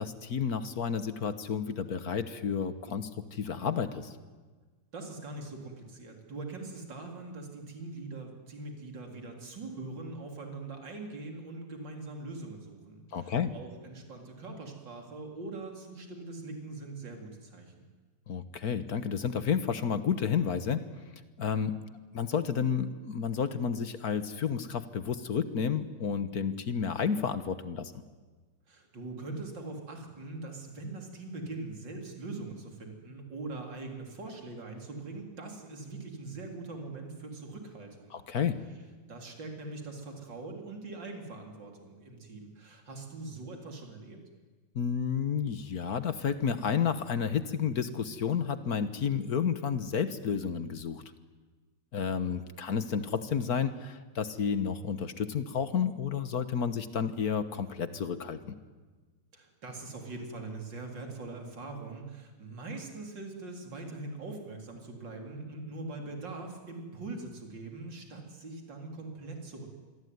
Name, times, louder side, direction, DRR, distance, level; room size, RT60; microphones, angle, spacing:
voice 1, 0.0-4.1 13.1-13.5 18.3-20.8 21.4-21.7 22.1-27.9 38.1-38.5 44.7-51.0 51.9-58.6, left 7 dB, 50° left, 12 dB, 1.5 m, -31 dB
voice 2, 4.9-17.9 28.7-38.1 39.1-44.2 59.3-69.7, right 3 dB, 55° right, 3 dB, 4.5 m, -42 dB
26.5 x 22.5 x 9.6 m, 1.4 s
omnidirectional pair, 2.4 m